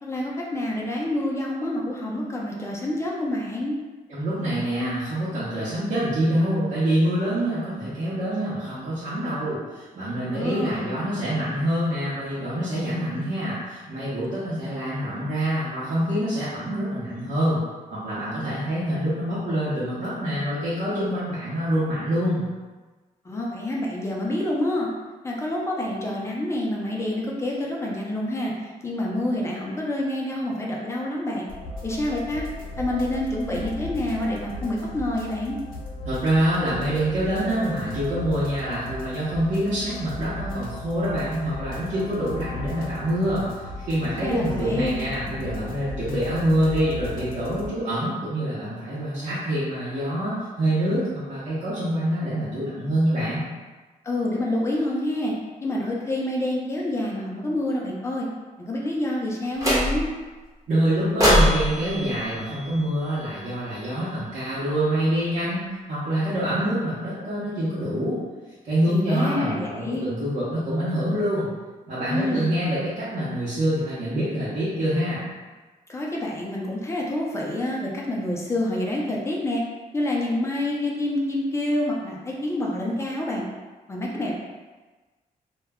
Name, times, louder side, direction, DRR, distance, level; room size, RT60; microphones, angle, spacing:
voice 1, 0.0-3.8 10.3-10.9 23.2-24.9 25.2-28.5 28.8-31.4 31.8-32.4 32.8-35.6 44.2-45.0 54.0-55.3 55.6-58.3 58.6-60.1 68.9-70.1 72.1-72.5 75.9-79.6 79.9-83.4 83.9-84.3, left 1 dB, 20° left, -3 dB, 0.4 m, -27 dB
voice 2, 4.1-17.6 17.9-22.4 36.0-53.5 60.7-68.2 68.6-71.5 71.9-75.3, right 1 dB, 55° right, -11 dB, 0.8 m, -26 dB
sound 1, 31.5-47.7, left 2 dB, 80° left, 0.5 m, -36 dB
sound 2, 59.6-60.2 61.2-63.4, equal, 20° right, 0.8 m, -23 dB
2.2 x 2.1 x 3.4 m, 1.3 s
cardioid pair, 135°, 14 cm